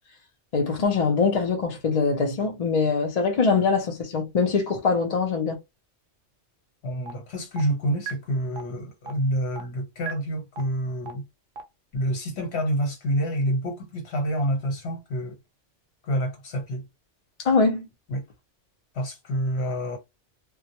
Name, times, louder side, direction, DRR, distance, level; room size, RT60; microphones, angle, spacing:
voice 1, 0.5-5.6 17.4-17.9, left 4 dB, 45° left, 0.5 m, -23 dB
voice 2, 6.8-11.2 11.9-15.4 16.0-16.9 18.1-18.2 18.9-20.0, equal, 65° left, 1.1 m, -28 dB
sound 1, 7.1-7.2 7.6-7.7 8.1-8.2 8.6-8.7 9.1-9.2 9.6-9.7 10.1-10.2 10.6-10.7 11.1-11.2 11.6-11.7, right 7 dB, 60° right, 0.7 m, -33 dB
2.2 x 2.0 x 2.8 m
omnidirectional pair, 1.2 m